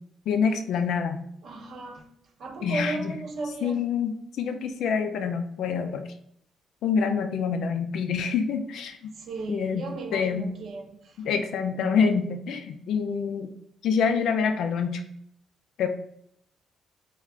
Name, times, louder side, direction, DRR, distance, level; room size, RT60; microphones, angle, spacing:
voice 1, 0.3-1.2 2.6-3.1 3.6-6.0 6.8-9.0 9.5-9.8 10.1-10.5 11.2-13.5 13.8-15.0 15.8-15.9, left 6 dB, 75° left, 6 dB, 0.3 m, -26 dB
voice 2, 1.4-2.1 2.4-3.8 9.1-11.4, right 3 dB, 60° right, 2 dB, 0.7 m, -35 dB
3.3 x 2.3 x 3.5 m, 0.71 s
cardioid pair, 90°, 0 cm